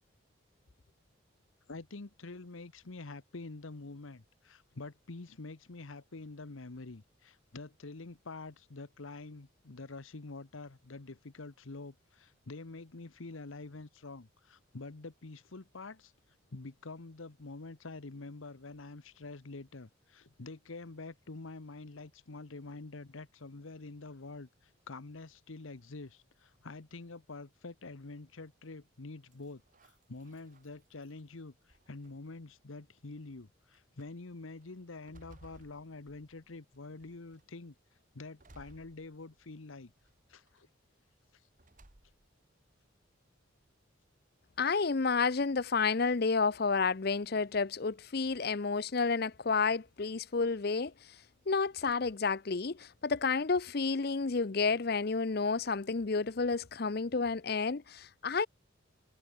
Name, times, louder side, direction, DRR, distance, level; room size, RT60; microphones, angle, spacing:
voice 1, 1.7-16.1 16.5-37.7 38.1-39.9 40.3-40.7, left 3 dB, 80° left, 1.1 m, -47 dB
sound 1, 29.3-31.2 31.7-32.4 33.2-33.3 33.7-34.1 34.6-36.6 37.0-37.5 38.4-39.5 40.0-40.6 41.6-42.4, right 1 dB, 40° right, 2.1 m, -60 dB
voice 2, 44.6-50.9 51.5-58.5, left 4 dB, 50° left, 0.6 m, -30 dB
head